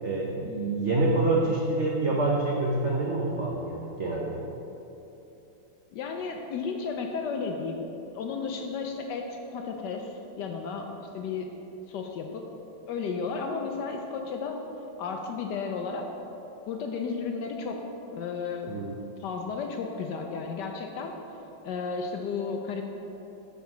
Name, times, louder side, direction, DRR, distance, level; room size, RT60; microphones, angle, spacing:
voice 1, 0.0-4.4 18.7-18.9, right 2 dB, 80° right, -2 dB, 0.6 m, -27 dB
voice 2, 5.9-11.5 11.9-12.4 12.9-14.6 15.0-16.1 16.7-17.8 18.1-18.7 19.2-21.1 21.6-22.8, left 5 dB, 75° left, 3 dB, 1.0 m, -33 dB
8.2 x 4.7 x 6.0 m, 3.0 s
omnidirectional pair, 2.4 m